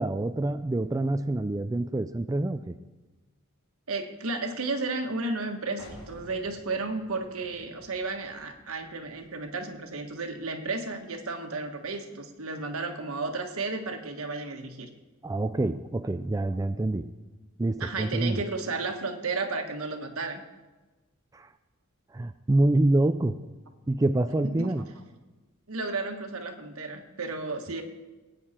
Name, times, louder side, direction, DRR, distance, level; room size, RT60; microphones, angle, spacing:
voice 1, 0.0-2.8 15.2-17.1 17.6-18.4 21.3-21.5 22.1-23.4 23.9-24.8, right 2 dB, 15° right, 9 dB, 0.4 m, -26 dB
voice 2, 3.9-14.9 17.8-20.4 24.4-24.7 25.7-27.8, right 3 dB, 75° right, 5 dB, 1.5 m, -33 dB
sound 1, 5.8-11.3, left 1 dB, 90° left, 3.3 m, -54 dB
20.0 x 9.4 x 4.4 m, 1.2 s
head